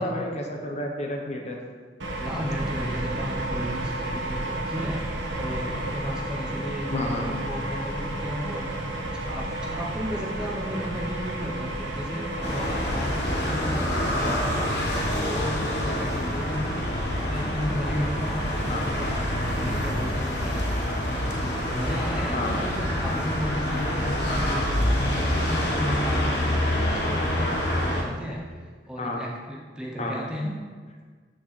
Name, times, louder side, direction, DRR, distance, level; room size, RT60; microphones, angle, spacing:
voice 1, 0.0-1.6 6.9-7.3 14.2-14.4 18.7-18.8 22.3-22.6 29.0-29.2 30.0-30.2, left 1 dB, 35° left, 1 dB, 0.9 m, -30 dB
sound 1, 2.0-13.6, right 1 dB, 80° right, 1.1 m, -32 dB
voice 2, 2.2-5.0 5.4-14.8 15.1-16.9 17.3-20.7 21.3-30.5, equal, 5° right, -2 dB, 0.7 m, -34 dB
sound 2, 12.4-28.0, left 1 dB, 65° left, 1.2 m, -26 dB
12.5 x 4.4 x 3.2 m, 1.5 s
head